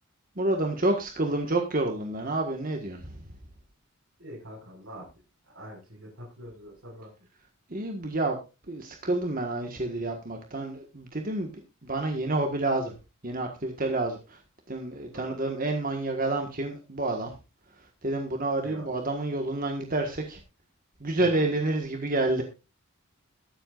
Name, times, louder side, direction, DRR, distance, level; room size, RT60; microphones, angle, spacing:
voice 1, 0.3-3.4 7.7-8.4 8.7-12.9 13.2-14.4 14.7-17.4 17.7-20.4 21.0-22.4, right 2 dB, 40° right, 2 dB, 1.6 m, -29 dB
voice 2, 4.2-5.1 5.4-7.1 15.1-15.3 18.6-18.9 21.2-21.4, equal, 60° right, -5 dB, 5.8 m, -44 dB
22.0 x 8.0 x 2.5 m, 0.29 s
head